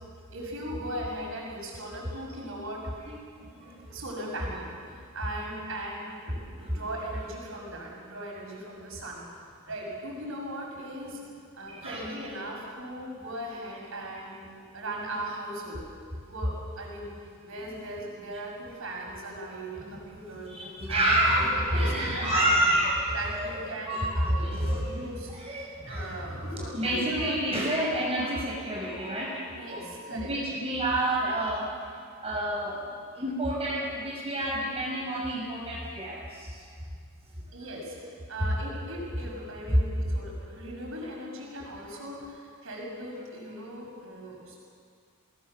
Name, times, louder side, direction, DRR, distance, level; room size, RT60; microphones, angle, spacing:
voice 1, 0.3-2.9 3.9-9.2 9.7-11.2 11.6-14.4 14.7-15.8 16.2-17.1 17.4-20.5 20.9-22.5 23.1-25.3 25.9-27.4 29.5-30.3 37.5-44.6, right 1 dB, 65° right, -2 dB, 6.7 m, -38 dB
voice 2, 3.0-3.9 6.2-6.8 11.7-12.1 13.0-13.1 14.7-14.8 17.6-18.0 19.8-25.1 25.3-32.8 33.1-36.6, right 1 dB, 30° right, -4 dB, 6.5 m, -29 dB
28.0 x 19.5 x 6.9 m, 2.2 s
head